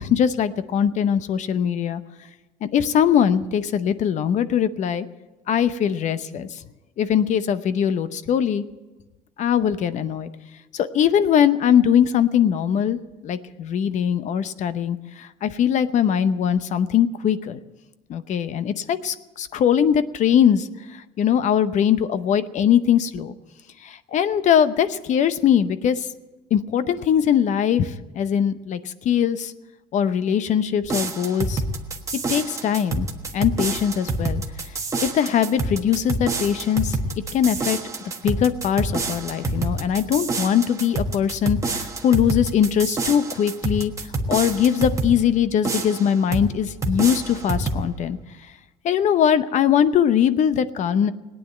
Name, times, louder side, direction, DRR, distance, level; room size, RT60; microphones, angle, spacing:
voice 1, 0.0-2.0 2.6-5.0 5.5-6.6 7.0-8.6 9.4-10.3 10.7-17.6 18.1-23.3 23.8-26.1 26.5-29.5 29.9-31.6 32.3-33.1 33.3-34.4 35.0-37.0 37.3-37.8 38.2-43.9 44.3-48.2 48.8-51.1, left 9 dB, 45° left, 13 dB, 0.8 m, -21 dB
sound 1, 30.8-45.2 45.6-46.5 46.8-47.9, right 2 dB, 20° right, 1.4 m, -27 dB
18.0 x 9.6 x 7.8 m, 1.1 s
cardioid pair, 115°, 17 cm